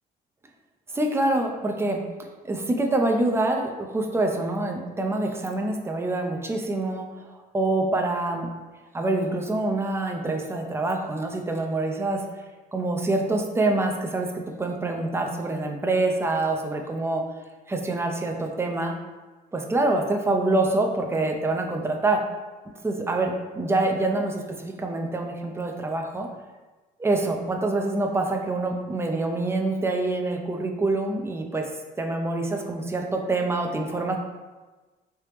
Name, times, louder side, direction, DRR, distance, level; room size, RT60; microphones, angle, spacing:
voice 1, 0.9-2.0 2.4-7.1 7.5-8.5 8.9-12.3 12.7-14.3 14.6-17.2 17.7-18.9 19.5-22.2 22.8-26.3 27.0-31.7 32.0-34.2, right 2 dB, 15° right, 2 dB, 0.4 m, -26 dB
3.3 x 2.8 x 3.1 m, 1.2 s
cardioid pair, 110°, 17 cm